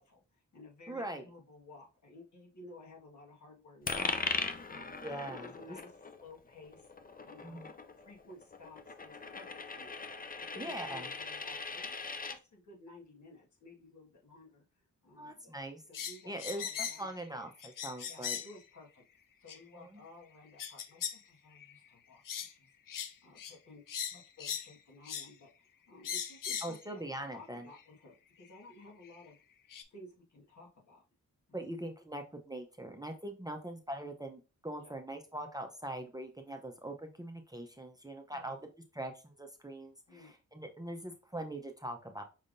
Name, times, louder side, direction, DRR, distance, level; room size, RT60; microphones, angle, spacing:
voice 1, 0.0-4.3 4.7-5.0 5.3-6.9 7.2-7.7 8.0-10.0 10.4-14.6 15.0-15.5 15.9-17.4 18.1-19.0 19.4-22.7 23.2-23.9 24.1-27.0 27.3-29.4 29.9-31.0 31.5-31.6 34.8-34.9 38.3-38.5 40.1-40.3, left 2 dB, 65° left, -1 dB, 1.7 m, -55 dB
voice 2, 0.9-1.2 5.0-5.5 7.4-7.7 10.6-11.1 15.2-15.8 16.2-18.4 19.8-20.0 26.6-27.7 31.5-42.2, right 1 dB, 10° right, 4 dB, 0.6 m, -42 dB
Coin (dropping), 3.9-12.4, left 4 dB, 30° left, 0.5 m, -40 dB
sound 1, 15.9-17.1 17.6-18.6 19.5-19.6 20.6-21.2 21.6-21.8 22.3-22.5 22.9-23.1 23.4-23.5 23.9-24.7 25.1-25.3 26.0-26.8 27.8-27.9 29.1-29.2 29.7-29.8, left 8 dB, 85° left, 0.6 m, -39 dB
5.4 x 3.5 x 2.6 m, 0.32 s
wide cardioid pair, 85°, 32 cm